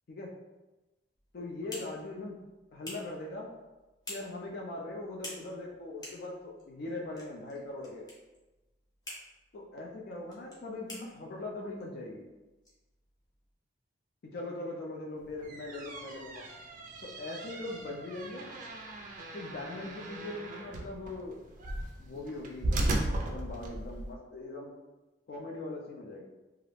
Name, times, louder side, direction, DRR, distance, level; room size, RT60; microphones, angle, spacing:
sound 1, 1.1-13.5, left 1 dB, 20° left, 0.7 m, -51 dB
voice 1, 1.3-2.4 2.7-3.5 4.1-8.1 9.5-12.2 14.2-16.4 17.0-18.5 19.3-21.4 22.0-24.7 25.3-26.2, left 2 dB, 60° left, -2 dB, 0.4 m, -41 dB
sound 2, 15.3-24.1, right 1 dB, 45° right, 0.3 m, -37 dB
2.3 x 2.0 x 3.2 m, 1.1 s
head